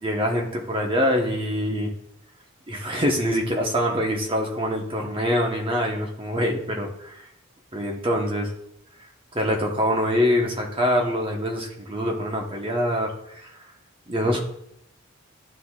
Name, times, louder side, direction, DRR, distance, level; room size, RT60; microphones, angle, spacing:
voice 1, 0.0-1.9 2.7-7.2 7.7-8.5 9.3-13.5 14.1-14.4, equal, 25° right, 1 dB, 1.0 m, -24 dB
11.5 x 3.9 x 2.4 m, 0.74 s
head